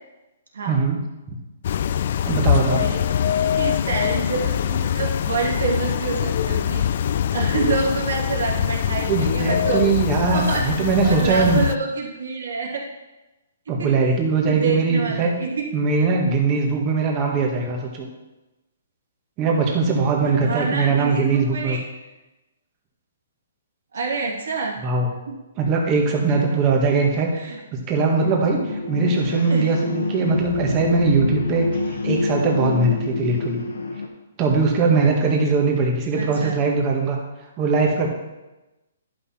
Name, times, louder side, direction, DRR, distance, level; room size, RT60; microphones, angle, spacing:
voice 1, 0.7-1.0 1.3-1.4 2.3-2.9 9.1-11.6 13.7-15.3 15.7-18.1 19.4-21.8 24.8-25.1 25.6-31.7 32.0-33.6 34.4-37.2 37.6-38.1, right 4 dB, 25° right, 1 dB, 1.6 m, -21 dB
sound 1, 1.6-11.8, left 9 dB, 55° left, 0.3 m, -23 dB
voice 2, 2.7-9.9 10.3-13.0 13.7-13.9 14.4-15.7 20.3-21.8 23.9-24.8 25.3-25.4 26.3-26.8 27.3-27.6 29.5-29.7 36.1-36.5, right 4 dB, 80° right, -1 dB, 2.5 m, -27 dB
sound 2, 28.1-34.1, left 3 dB, 85° left, 1.3 m, -26 dB
11.0 x 5.7 x 4.3 m, 1.0 s
hypercardioid pair, 150°, 0 cm